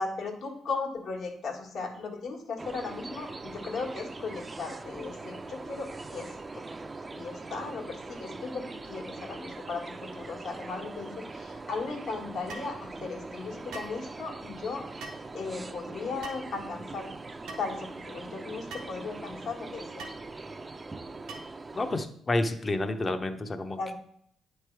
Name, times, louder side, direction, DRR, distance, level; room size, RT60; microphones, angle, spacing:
voice 1, 0.0-6.6 7.1-17.1 17.6-20.1 23.8-23.9, left 4 dB, 70° left, 2 dB, 1.4 m, -37 dB
sound 1, 2.6-22.1, right 3 dB, 25° right, 0.4 m, -42 dB
sound 2, 12.5-12.7 13.7-14.0 15.0-15.3 16.2-16.5 17.5-17.7 18.7-18.9 20.0-20.2 21.3-21.6, right 3 dB, 90° right, 1.2 m, -42 dB
voice 2, 21.7-23.9, left 2 dB, 30° left, 8 dB, 0.7 m, -30 dB
9.1 x 3.3 x 4.5 m, 0.68 s
cardioid pair, 90°, 0 cm